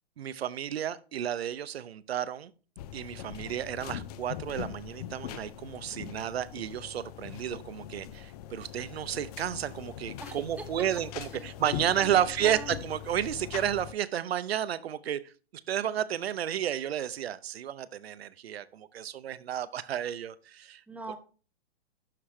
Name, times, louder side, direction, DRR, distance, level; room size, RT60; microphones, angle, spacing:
voice 1, 0.2-2.5 2.9-15.3 15.7-20.8, right 10 dB, 70° right, 0.7 m, -32 dB
sound 1, 2.8-13.9, left 11 dB, 40° left, 0.5 m, -42 dB
voice 2, 10.2-10.6 11.2-12.7 20.9-21.2, right 1 dB, 5° right, 0.8 m, -43 dB
12.0 x 4.8 x 3.2 m
hypercardioid pair, 125°, 32 cm